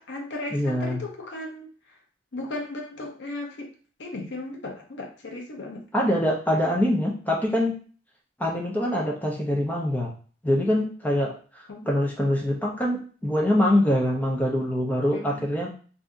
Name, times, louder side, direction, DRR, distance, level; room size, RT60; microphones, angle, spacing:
voice 1, 0.0-1.7 2.3-3.7 4.0-5.8 11.7-11.9 15.1-15.4, left 2 dB, 80° left, 1 dB, 0.8 m, -36 dB
voice 2, 0.5-1.0 5.9-7.8 8.4-10.1 10.4-15.7, left 1 dB, 10° left, -2 dB, 0.7 m, -24 dB
2.7 x 2.6 x 3.6 m, 0.40 s
head